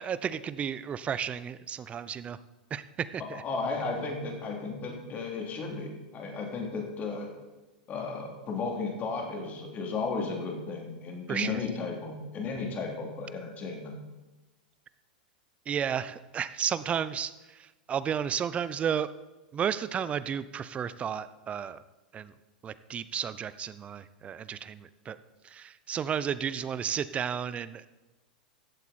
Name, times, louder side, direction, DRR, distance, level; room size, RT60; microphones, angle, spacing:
voice 1, 0.0-2.4 2.7-3.4 11.3-11.6 15.7-19.1 19.5-21.8 22.1-22.3 22.6-25.2 25.4-27.9, right 8 dB, 25° right, 16 dB, 0.6 m, -33 dB
voice 2, 3.3-7.3 7.9-13.9, left 4 dB, 35° left, 1 dB, 3.1 m, -34 dB
14.5 x 8.2 x 4.3 m, 1.1 s
hypercardioid pair, 100°, 5 cm